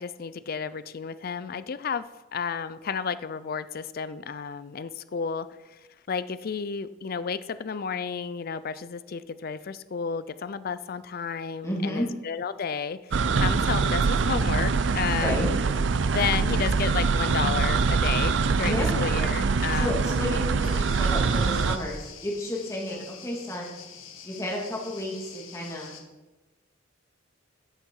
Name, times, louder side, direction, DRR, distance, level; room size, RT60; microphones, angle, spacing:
voice 1, 0.0-5.8 6.1-15.4 16.1-20.1 22.9-23.0, left 6 dB, 50° left, 15 dB, 0.4 m, -32 dB
voice 2, 11.6-12.1 15.1-15.5 18.6-19.1 19.7-23.7 24.2-26.0, left 1 dB, 15° left, -2 dB, 2.4 m, -31 dB
sound 1, 13.1-21.8, right 4 dB, 65° right, 0.5 m, -24 dB
sound 2, 20.6-26.0, left 7 dB, 85° left, 1.3 m, -46 dB
12.5 x 6.6 x 4.7 m, 1.1 s
head